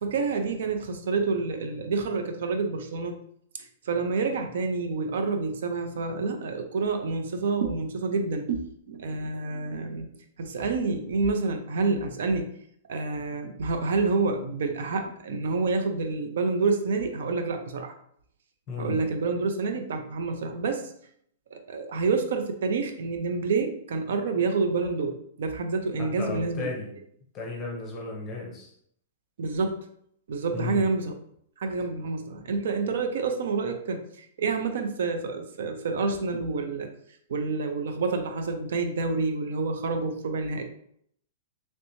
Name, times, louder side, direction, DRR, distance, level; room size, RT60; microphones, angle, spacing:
voice 1, 0.0-3.2 3.6-8.6 8.9-10.1 10.4-12.5 12.9-17.9 18.8-20.9 21.5-26.7 29.4-29.8 30.3-31.1 31.6-36.9 37.3-40.7, right 4 dB, 65° right, 6 dB, 0.5 m, -28 dB
voice 2, 18.7-19.0 26.0-26.9 27.3-28.7 30.5-30.8, left 3 dB, 20° left, -1 dB, 0.7 m, -34 dB
3.2 x 3.0 x 2.7 m, 0.67 s
hypercardioid pair, 170°, 0 cm